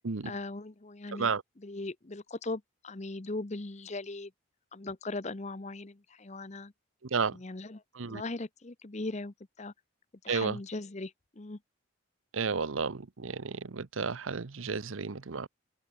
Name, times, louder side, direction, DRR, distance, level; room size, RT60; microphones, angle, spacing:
voice 1, 0.2-1.3 1.6-4.3 4.7-6.7 7.3-7.8 8.1-9.7 10.2-11.6, left 2 dB, 35° left, 0.8 m, -39 dB
voice 2, 10.3-10.6 12.3-15.5, right 5 dB, 75° right, 0.8 m, -32 dB
open air
head